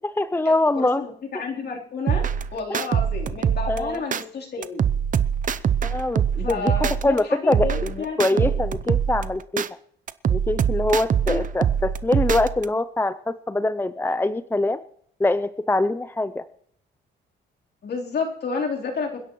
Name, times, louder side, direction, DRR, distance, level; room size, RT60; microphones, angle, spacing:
voice 1, 0.2-1.0 3.7-4.0 5.8-6.7 7.0-9.6 10.3-14.8 15.2-16.4, left 2 dB, 10° left, 12 dB, 0.5 m, -23 dB
voice 2, 0.8-2.2 2.5-4.8 6.4-8.5 11.3-11.4 17.8-19.3, left 4 dB, 55° left, -1 dB, 3.7 m, -30 dB
sound 1, 2.1-4.2 4.6-7.2 7.5-9.7 10.1-12.6, right 8 dB, 40° right, 0.6 m, -24 dB
28.0 x 10.5 x 3.1 m, 0.66 s
cardioid pair, 90°, 20 cm